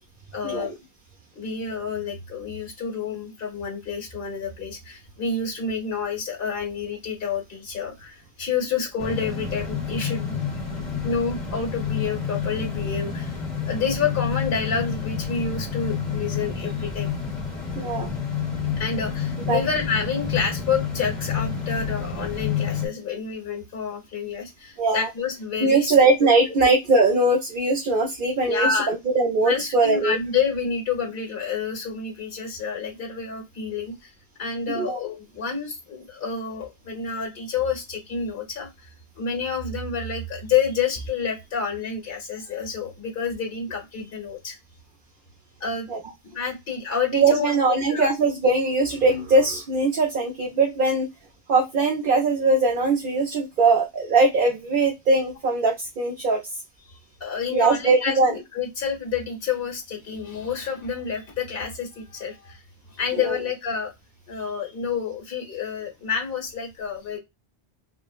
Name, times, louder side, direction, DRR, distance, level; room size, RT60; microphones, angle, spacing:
voice 1, 0.3-0.7 1.3-10.3 11.0-17.1 18.8-25.9 26.2-26.5 28.4-28.9 29.4-34.1 34.4-38.9 39.2-44.6 45.6-45.9 46.2-48.1 57.2-62.6 62.9-63.9 64.3-67.2, left 5 dB, 65° left, 1 dB, 1.4 m, -29 dB
sound 1, 9.0-22.9, left 6 dB, 45° left, 1.0 m, -29 dB
voice 2, 17.8-18.1 19.5-19.6 24.8-25.1 25.6-30.2 34.7-35.0 45.9-46.0 47.1-51.1 51.5-56.6 57.5-58.3 63.2-63.4, right 3 dB, 60° right, 3 dB, 0.8 m, -21 dB
3.8 x 2.0 x 2.4 m, 0.20 s
omnidirectional pair, 1.0 m